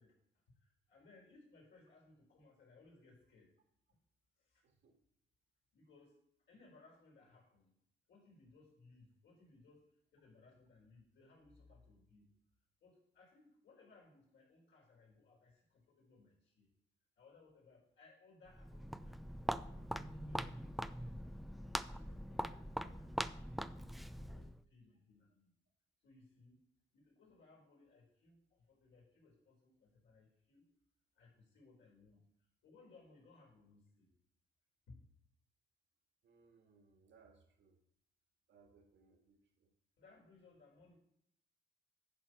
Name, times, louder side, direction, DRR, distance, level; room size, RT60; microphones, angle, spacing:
voice 1, 0.0-3.6 4.4-4.6 5.7-7.7 8.1-12.3 12.8-16.7 17.2-21.6 21.9-23.6 24.1-25.5 26.0-30.7 31.1-34.1 34.9-35.0 40.0-40.9, left 3 dB, 70° left, -2 dB, 4.3 m, -65 dB
voice 2, 4.6-5.0 36.2-37.8 38.5-39.7, right 4 dB, 70° right, 3 dB, 2.0 m, -68 dB
Walk footsteps, 18.5-24.6, equal, ahead, 0.3 m, -42 dB
10.5 x 4.7 x 6.1 m, 0.73 s
cardioid pair, 90°, 20 cm